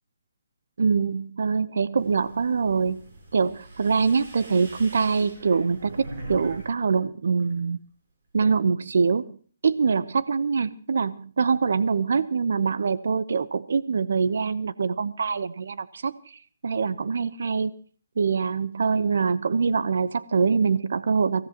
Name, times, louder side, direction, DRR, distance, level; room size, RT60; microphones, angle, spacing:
voice 1, 0.8-3.0 3.3-7.8 8.3-9.3 9.6-16.1 16.6-17.7 18.2-21.5, right 5 dB, 65° right, 16 dB, 0.8 m, -24 dB
sound 1, 2.0-6.7 7.0-7.6, right 2 dB, 45° right, 7.5 m, -43 dB
23.5 x 16.5 x 2.9 m, 0.42 s
hypercardioid pair, 170°, 0 cm